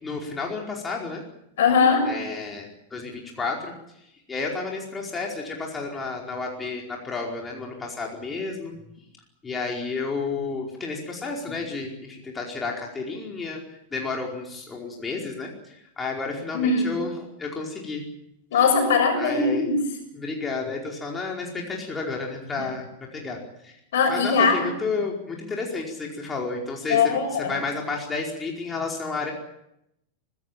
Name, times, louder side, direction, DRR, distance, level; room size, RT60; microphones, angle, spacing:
voice 1, 0.0-1.2 2.0-3.7 4.3-8.7 9.4-13.6 13.9-18.0 18.5-18.6 19.2-19.7 20.1-23.7 24.1-29.3, left 4 dB, 15° left, -1 dB, 4.8 m, -31 dB
voice 2, 1.6-2.1 16.5-16.9 18.5-19.8 22.6-22.7 23.9-24.6 26.9-27.5, left 5 dB, 60° left, 5 dB, 6.8 m, -20 dB
24.5 x 16.5 x 9.1 m, 0.81 s
figure-of-eight pair, 90°, 0 cm